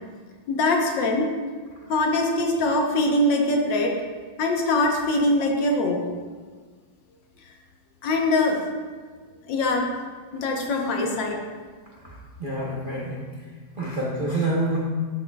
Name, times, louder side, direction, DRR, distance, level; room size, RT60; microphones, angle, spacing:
voice 1, 0.5-1.3 1.9-3.9 4.4-6.0 8.0-8.6 9.5-9.9 10.3-11.4, left 2 dB, 70° left, 1 dB, 1.5 m, -22 dB
voice 2, 12.0-13.2 13.8-14.8, right 2 dB, 50° right, -6 dB, 0.6 m, -27 dB
10.5 x 6.2 x 2.3 m, 1.5 s
omnidirectional pair, 2.3 m